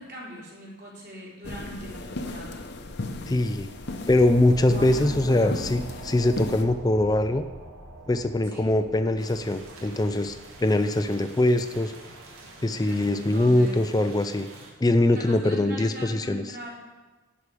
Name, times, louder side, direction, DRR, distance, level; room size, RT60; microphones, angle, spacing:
voice 1, 0.0-2.6 4.7-5.6 8.5-8.7 12.8-13.8 15.1-16.8, equal, 50° right, -5 dB, 3.6 m, -40 dB
sound 1, 1.4-6.6, left 2 dB, 55° left, 0.8 m, -36 dB
voice 2, 3.3-3.7 4.1-7.4 8.1-10.4 10.6-11.9 12.6-14.5 14.8-16.4, left 1 dB, 20° left, 9 dB, 0.4 m, -22 dB
sound 2, 3.3-14.4, right 1 dB, 65° right, 3.7 m, -45 dB
sound 3, 9.2-14.7, right 2 dB, 85° right, 2.1 m, -47 dB
11.0 x 4.9 x 8.4 m, 1.3 s
head